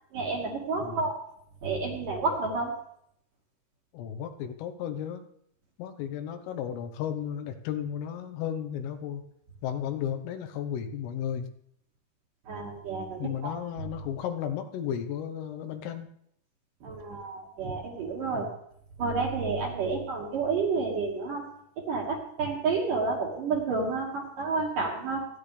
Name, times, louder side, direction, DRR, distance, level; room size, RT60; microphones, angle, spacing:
voice 1, 0.1-1.2 1.6-2.8 12.5-13.5 13.8-13.9 16.8-18.5 19.0-21.5 21.8-25.3, right 4 dB, 55° right, -1 dB, 2.6 m, -30 dB
voice 2, 3.9-5.3 5.8-9.2 9.6-11.5 13.2-16.1 18.3-18.5, left 9 dB, 85° left, 6 dB, 3.6 m, -34 dB
28.5 x 9.9 x 3.3 m, 0.72 s
omnidirectional pair, 5.8 m